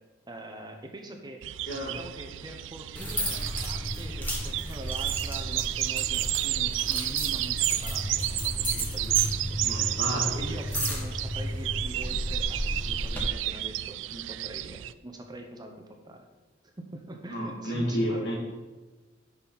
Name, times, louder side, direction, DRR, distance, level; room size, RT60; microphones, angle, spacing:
voice 1, 0.3-1.4 1.9-9.6 10.0-16.2 16.6-18.3, right 1 dB, 20° right, 3 dB, 0.8 m, -43 dB
sound 1, 1.4-14.9, right 15 dB, 75° right, 0.3 m, -31 dB
voice 2, 1.7-2.0 9.6-10.4 17.3-18.4, equal, 65° left, -2 dB, 2.5 m, -31 dB
sound 2, 3.0-13.2, equal, 10° left, 1.7 m, -33 dB
9.6 x 6.0 x 4.1 m, 1.3 s
head